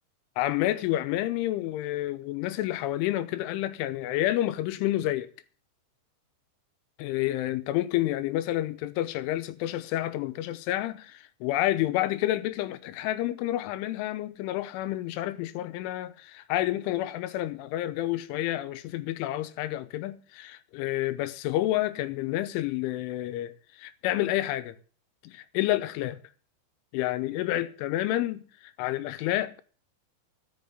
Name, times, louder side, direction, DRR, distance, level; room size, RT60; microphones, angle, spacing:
voice 1, 0.4-5.3 7.0-24.8 25.2-26.2 26.9-28.5 28.8-29.6, left 14 dB, 85° left, 3.3 m, -29 dB
12.5 x 6.1 x 9.4 m
omnidirectional pair, 5.5 m